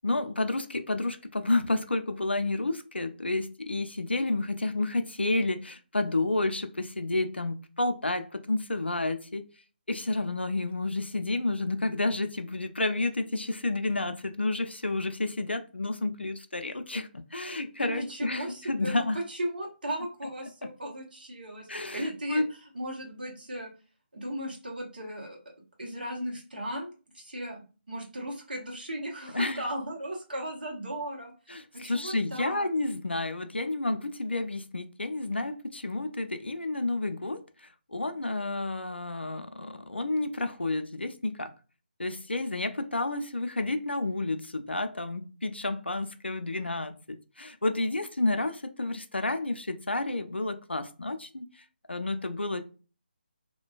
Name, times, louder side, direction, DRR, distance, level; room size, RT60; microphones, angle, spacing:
voice 1, 0.0-9.5 9.9-19.2 20.6-20.7 21.7-22.5 29.3-29.6 31.5-41.5 42.0-52.6, left 2 dB, 80° left, 0.4 m, -30 dB
voice 2, 17.8-22.4 22.7-23.7 24.1-25.4 25.8-26.9 27.1-31.3 31.7-32.7, right 1 dB, 55° right, 0.9 m, -36 dB
2.5 x 2.1 x 2.3 m
figure-of-eight pair, 150°, 6 cm